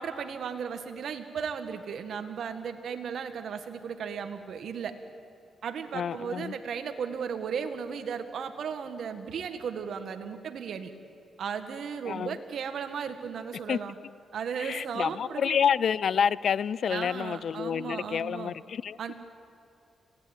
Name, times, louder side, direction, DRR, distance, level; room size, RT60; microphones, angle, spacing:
voice 1, 0.0-5.0 5.6-10.9 11.4-13.9 14.3-15.6 16.9-18.5 19.0-19.1, right 6 dB, 70° right, 8 dB, 1.9 m, -35 dB
voice 2, 5.9-6.6 12.1-12.4 13.7-13.8 14.6-19.0, left 7 dB, 65° left, 20 dB, 0.5 m, -28 dB
27.0 x 18.0 x 9.1 m, 2.5 s
cardioid pair, 75°, 0 cm